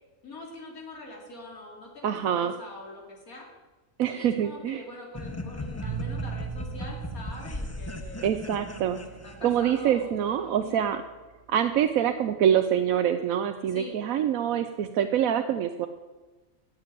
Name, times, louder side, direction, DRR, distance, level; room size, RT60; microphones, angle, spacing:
voice 1, 0.2-3.5 4.0-8.3 9.0-10.8 13.7-13.9, left 2 dB, 90° left, 0 dB, 3.0 m, -43 dB
voice 2, 2.0-2.5 4.0-4.8 8.2-9.0 9.4-11.0 11.5-15.9, right 9 dB, 80° right, 8 dB, 1.1 m, -25 dB
sound 1, 5.1-9.9, left 2 dB, 15° left, 0.5 m, -38 dB
sound 2, 5.8-11.6, right 9 dB, 50° right, 0.3 m, -40 dB
13.5 x 7.5 x 9.1 m, 1.2 s
omnidirectional pair, 1.5 m